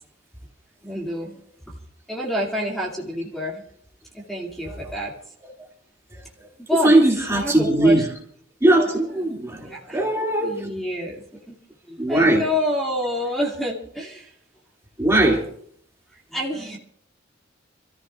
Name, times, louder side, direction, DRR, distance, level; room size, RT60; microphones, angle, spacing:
voice 1, 0.8-1.3 1.7-1.8 2.1-3.6 4.1-5.1 6.7-8.1 9.3-10.0 10.4-11.5 11.9-14.3 16.1-16.8, left 1 dB, ahead, -3 dB, 2.4 m, -28 dB
voice 2, 6.8-8.1 8.6-10.7 12.0-12.4 15.0-15.4, right 1 dB, 15° right, -1 dB, 2.5 m, -19 dB
28.5 x 14.0 x 2.5 m, 0.64 s
head